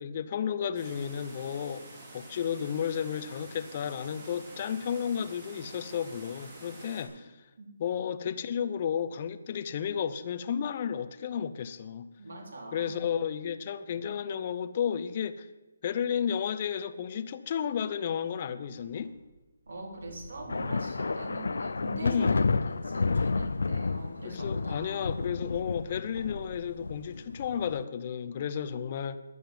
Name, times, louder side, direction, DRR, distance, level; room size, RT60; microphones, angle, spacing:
voice 1, 0.0-1.8 2.1-7.3 7.8-12.1 12.7-15.5 15.8-19.1 22.0-22.4 24.2-29.2, left 8 dB, 25° left, 0.6 m, -32 dB
sound 1, 0.7-7.0, right 2 dB, 20° right, 3.3 m, -49 dB
voice 2, 12.2-13.0 19.7-25.2, right 1 dB, 55° right, 3.7 m, -42 dB
Wind / Car, 18.7-24.5 24.8-27.2, right 1 dB, 80° right, 4.2 m, -53 dB
sound 2, 20.5-27.8, left 4 dB, 70° left, 0.5 m, -31 dB
12.5 x 11.0 x 7.7 m
hypercardioid pair, 180°, 0 cm